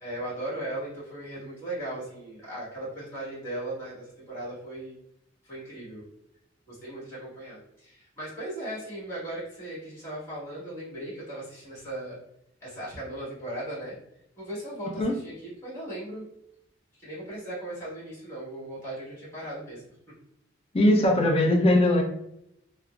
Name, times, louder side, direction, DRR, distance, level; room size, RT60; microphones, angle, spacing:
voice 1, 0.0-5.0 5.4-6.0 6.7-12.2 12.6-14.0 14.4-16.3 17.0-19.8, right 1 dB, 15° left, -9 dB, 1.3 m, -37 dB
voice 2, 20.7-22.0, left 1 dB, 30° left, 1 dB, 0.5 m, -20 dB
3.7 x 2.0 x 2.3 m, 0.79 s
head